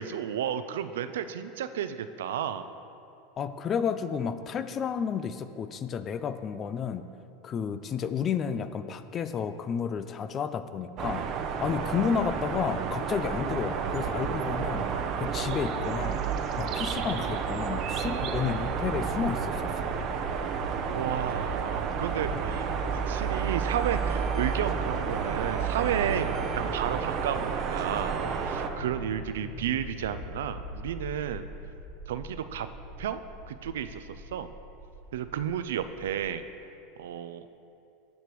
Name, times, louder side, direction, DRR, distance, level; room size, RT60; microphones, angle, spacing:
voice 1, 0.0-2.7 20.9-31.4 32.1-32.7 33.0-33.2 33.5-34.5 35.1-36.4 37.0-37.4, right 9 dB, 85° right, 11 dB, 0.4 m, -32 dB
voice 2, 3.4-7.0 7.4-11.3 11.6-14.9 15.2-16.2 16.6-19.9, left 7 dB, 35° left, 12 dB, 0.4 m, -31 dB
sound 1, 11.0-28.7, right 6 dB, 50° right, 0.7 m, -31 dB
sound 2, 18.6-36.4, left 1 dB, 75° left, 1.3 m, -42 dB
sound 3, 22.5-28.4, right 2 dB, 20° right, 1.1 m, -46 dB
13.0 x 6.7 x 3.1 m, 2.6 s
hypercardioid pair, 105°, 0 cm